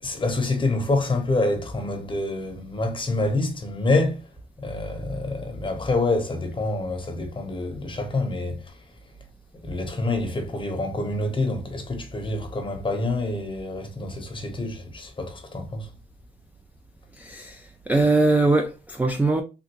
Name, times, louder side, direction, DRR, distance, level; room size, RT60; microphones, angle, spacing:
voice 1, 0.0-4.2 4.6-8.8 9.6-15.9, left 2 dB, 25° left, 0.9 m, -27 dB
voice 2, 17.1-19.4, right 2 dB, 10° right, 0.3 m, -22 dB
3.4 x 2.5 x 2.9 m
cardioid pair, 90°, 20 cm